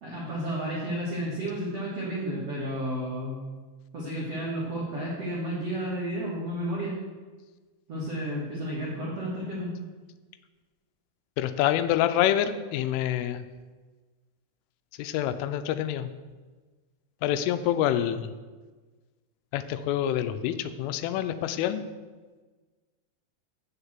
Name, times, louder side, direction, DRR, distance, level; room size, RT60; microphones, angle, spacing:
voice 1, 0.0-3.5 3.9-6.9 7.9-9.8, equal, 90° right, -6 dB, 1.4 m, -32 dB
voice 2, 11.4-13.4 15.0-16.1 17.2-18.3 19.5-21.8, left 11 dB, 85° left, 11 dB, 3.1 m, -27 dB
7.3 x 6.9 x 7.2 m, 1.3 s
omnidirectional pair, 5.6 m